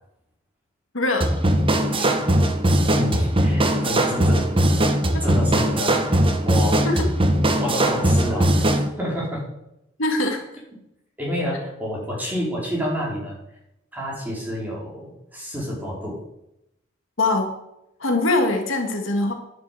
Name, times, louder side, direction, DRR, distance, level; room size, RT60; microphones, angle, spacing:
voice 1, 0.9-1.3 5.1-5.2 6.9-7.1 10.0-10.4 17.2-17.5 18.0-19.3, left 2 dB, 70° left, 4 dB, 1.8 m, -22 dB
sound 1, 1.2-8.9, right 1 dB, 25° right, 1.1 m, -20 dB
voice 2, 2.9-4.6 5.2-6.9 7.6-8.7 9.0-9.4 11.2-13.4 13.9-16.2, equal, 10° right, -4 dB, 4.3 m, -29 dB
10.5 x 6.8 x 7.7 m, 0.84 s
head